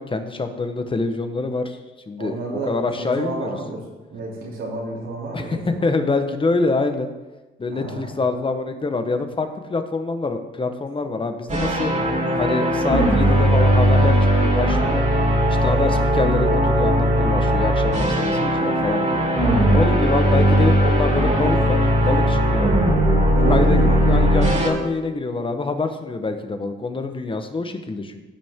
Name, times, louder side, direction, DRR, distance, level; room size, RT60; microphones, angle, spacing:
voice 1, 0.0-1.8 2.1-2.4 2.7-3.6 5.3-7.1 7.6-11.9 12.4-15.0 15.5-19.3 19.7-22.7 23.5-23.8 24.1-28.2, left 3 dB, 25° left, 7 dB, 1.1 m, -25 dB
voice 2, 2.2-3.8 4.1-5.8 7.7-8.1 11.9-12.3 15.6-15.9 22.0-22.2 23.3-24.0, right 2 dB, 85° right, -4 dB, 3.1 m, -29 dB
sound 1, 11.5-24.7, equal, 35° right, 3.0 m, -18 dB
15.5 x 6.2 x 3.7 m, 1.1 s
cardioid pair, 90°, 20 cm